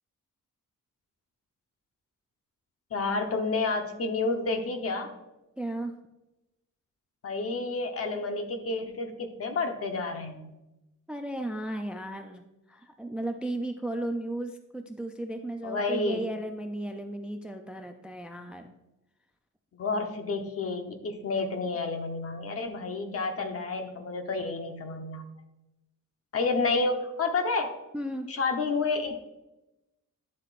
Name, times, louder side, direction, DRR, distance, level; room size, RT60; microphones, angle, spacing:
voice 1, 2.9-5.1 7.2-10.5 15.6-16.2 19.7-25.3 26.3-27.8 28.3-29.2, left 3 dB, 45° left, 5 dB, 1.0 m, -30 dB
voice 2, 5.6-5.9 11.1-18.7 27.9-28.3, right 1 dB, 5° right, 5 dB, 0.4 m, -35 dB
11.0 x 7.4 x 2.5 m, 0.96 s
wide cardioid pair, 175°, 32 cm